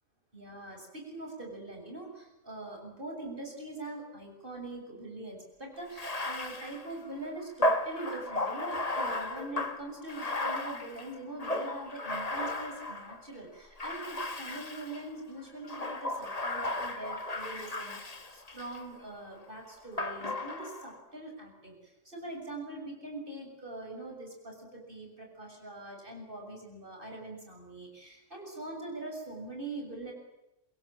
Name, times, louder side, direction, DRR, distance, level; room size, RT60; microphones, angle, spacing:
voice 1, 0.3-30.1, right 2 dB, 45° right, 2 dB, 7.5 m, -43 dB
Bathtub (filling or washing), 5.9-13.2 13.8-15.1 15.6-18.8 20.0-20.9, left 1 dB, 30° left, 1.8 m, -34 dB
27.0 x 22.5 x 8.9 m, 0.93 s
omnidirectional pair, 1.3 m